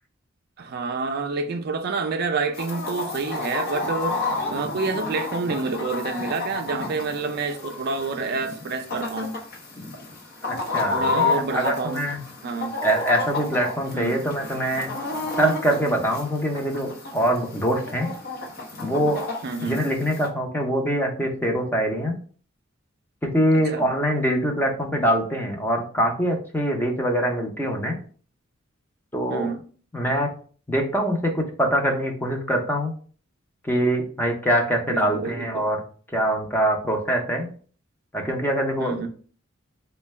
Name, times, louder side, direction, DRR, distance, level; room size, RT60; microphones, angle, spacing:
voice 1, 0.6-4.2 4.5-9.4 10.9-12.0 12.4-12.7 13.9-14.2 19.4-19.8 23.7-23.9 29.3-29.6 34.9-35.7 38.8-39.1, right 4 dB, 50° right, 0.4 m, -28 dB
Chicken rooster, 2.5-20.3, left 3 dB, 50° left, 0.8 m, -31 dB
voice 2, 10.4-12.2 12.8-14.9 15.4-18.1 18.8-19.2 19.6-22.1 23.2-28.0 29.1-29.5 29.9-30.3 30.7-32.9 33.6-35.8 36.1-37.5 38.1-39.1, equal, 10° left, 0.6 m, -24 dB
3.7 x 2.2 x 3.2 m
head